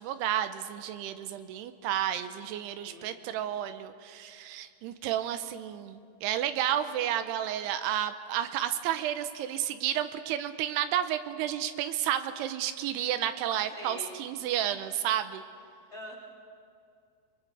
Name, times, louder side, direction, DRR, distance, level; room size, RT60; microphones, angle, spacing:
voice 1, 0.0-15.4, right 11 dB, 85° right, 10 dB, 2.8 m, -31 dB
voice 2, 2.8-3.2 13.7-14.1 15.9-16.2, left 1 dB, 15° left, -5 dB, 3.2 m, -44 dB
28.0 x 22.5 x 4.7 m, 2.3 s
omnidirectional pair, 4.7 m